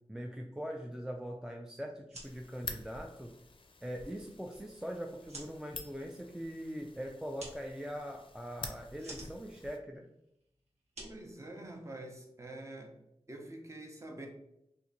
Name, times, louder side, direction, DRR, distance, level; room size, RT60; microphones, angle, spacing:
voice 1, 0.1-3.3 3.8-10.1, equal, 5° right, 2 dB, 0.3 m, -42 dB
sound 1, 1.9-12.1, right 2 dB, 85° right, 1.1 m, -54 dB
sound 2, 2.2-9.8, left 4 dB, 50° left, 0.5 m, -49 dB
voice 2, 11.0-13.0 13.3-14.3, right 1 dB, 25° right, 1 dB, 0.8 m, -46 dB
2.8 x 2.5 x 3.8 m, 0.81 s
wide cardioid pair, 60°, 11 cm